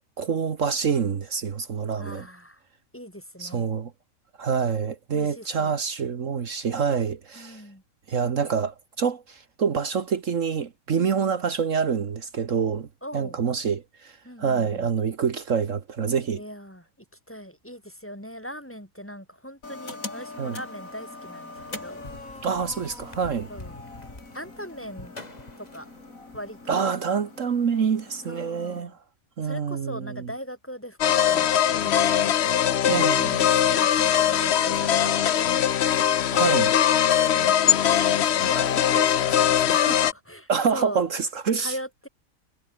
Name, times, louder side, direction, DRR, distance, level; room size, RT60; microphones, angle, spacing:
voice 1, 0.2-2.2 3.4-3.9 4.4-7.6 8.1-12.9 13.1-16.4 20.4-20.6 22.4-23.5 26.7-29.0 29.4-30.3 32.8-33.4 36.3-36.7 40.5-41.7, right 6 dB, 65° right, 1.7 m, -26 dB
voice 2, 2.0-2.6 2.9-3.7 5.1-5.7 7.4-7.8 10.9-11.5 13.0-13.4 14.2-14.9 16.3-16.9 17.3-22.0 23.5-23.8 24.3-25.2 25.6-25.9 26.3-27.0 28.3-29.0 29.4-32.3 33.1-35.5 37.3-37.8 38.2-41.0 41.6-42.1, equal, 10° left, 3.9 m, -39 dB
sound 1, 19.6-28.8, left 2 dB, 70° left, 4.9 m, -42 dB
sound 2, 21.6-26.7, left 2 dB, 30° left, 3.0 m, -46 dB
sound 3, 31.0-40.1, left 9 dB, 55° left, 0.9 m, -21 dB
omnidirectional pair, 1.5 m